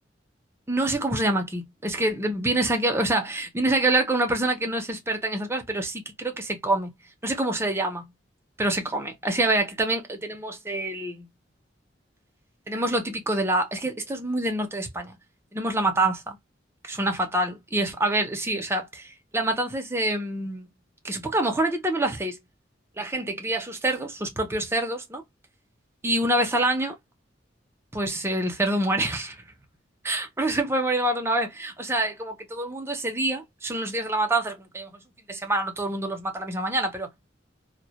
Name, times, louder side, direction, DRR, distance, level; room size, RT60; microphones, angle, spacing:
voice 1, 0.7-6.9 7.2-8.1 8.6-11.3 12.7-15.2 15.5-16.4 16.8-20.7 21.0-22.4 23.0-25.2 26.0-26.9 27.9-29.4 30.0-35.0 35.3-37.1, right 1 dB, 15° right, 0.5 m, -26 dB
2.1 x 2.1 x 2.8 m
head